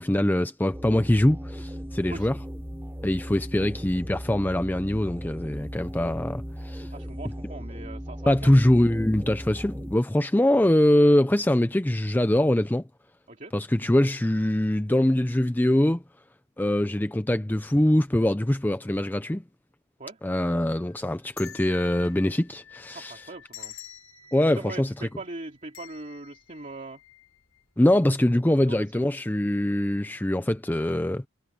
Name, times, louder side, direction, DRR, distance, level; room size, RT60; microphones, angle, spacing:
voice 1, 0.0-2.4 3.0-6.9 8.3-12.8 13.5-16.0 16.6-19.4 20.2-23.1 24.3-24.9 27.8-31.3, left 1 dB, 10° left, 0.5 m, -23 dB
sound 1, 0.7-10.0, equal, 10° right, 7.8 m, -37 dB
voice 2, 6.9-8.6 13.3-13.5 20.0-20.2 22.9-23.8 24.5-27.0 28.6-29.1, right 2 dB, 35° right, 2.5 m, -40 dB
sound 2, 20.4-27.6 28.0-28.1 29.0-29.3 29.6-29.8, left 9 dB, 70° left, 5.9 m, -48 dB
head